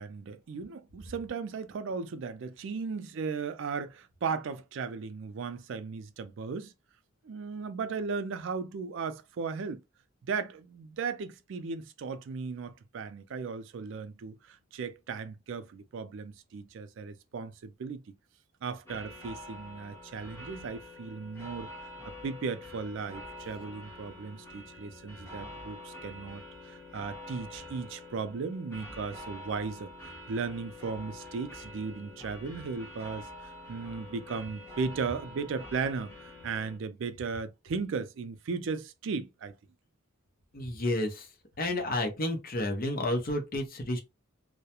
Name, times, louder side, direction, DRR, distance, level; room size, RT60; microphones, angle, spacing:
voice 1, 0.0-6.7 7.2-9.8 10.2-18.1 18.6-21.7 22.0-39.5, right 5 dB, 60° right, 0.3 m, -36 dB
sound 1, 18.9-36.8, left 1 dB, 10° left, 1.1 m, -46 dB
voice 2, 40.5-41.3 41.6-44.0, left 1 dB, 45° left, 0.7 m, -31 dB
2.3 x 2.1 x 2.8 m
head